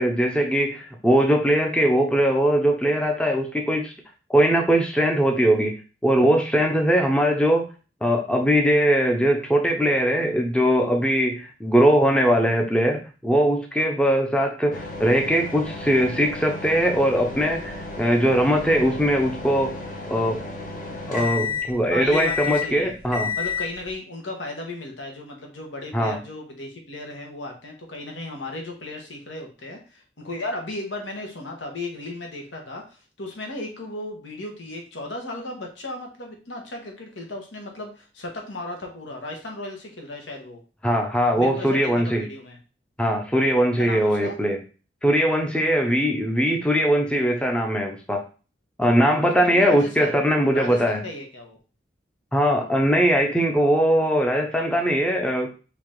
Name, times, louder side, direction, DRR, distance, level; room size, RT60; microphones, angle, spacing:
voice 1, 0.0-3.9 4.3-5.7 6.0-7.7 8.0-19.8 20.1-20.4 21.1-23.3 25.9-26.2 40.8-42.3 43.0-44.6 45.0-48.2 48.8-51.0 52.3-55.5, equal, 5° left, 2 dB, 0.6 m, -21 dB
sound 1, 14.7-23.9, left 4 dB, 45° left, 0.7 m, -32 dB
voice 2, 21.9-22.9 23.4-40.6 41.3-42.6 43.8-44.3 49.5-51.6, left 2 dB, 85° left, 2 dB, 1.4 m, -35 dB
4.9 x 2.9 x 3.7 m, 0.35 s
head